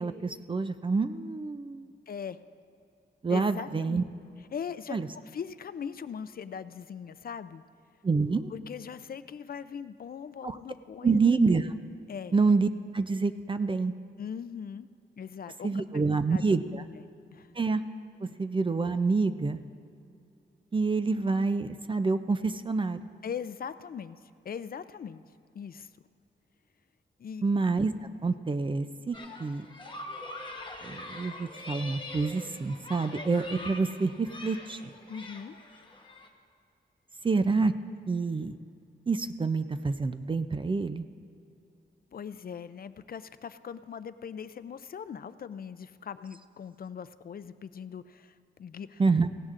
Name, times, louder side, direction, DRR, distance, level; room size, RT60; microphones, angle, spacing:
voice 1, 0.0-1.9 3.2-4.0 4.9-5.1 8.0-8.5 10.4-10.6 11.0-11.7 12.3-12.7 12.9-13.9 15.6-16.8 17.6-17.8 18.2-19.6 20.7-23.0 27.4-27.9 28.2-29.7 30.8-34.8 37.2-37.7 38.1-38.6 39.1-41.1 49.0-49.3, right 4 dB, 25° right, 10 dB, 0.4 m, -27 dB
voice 2, 2.1-2.4 3.3-4.0 4.5-5.0 5.3-7.6 8.5-11.2 12.1-12.4 14.2-14.9 15.2-16.4 16.7-17.1 17.3-17.5 23.2-25.2 25.5-25.9 27.2-27.4 35.1-35.6 42.1-49.0, left 7 dB, 50° left, 14 dB, 0.4 m, -40 dB
sound 1, 29.1-36.3, left 2 dB, 25° left, 1.0 m, -43 dB
16.5 x 16.5 x 2.5 m, 2.5 s
wide cardioid pair, 140°, 19 cm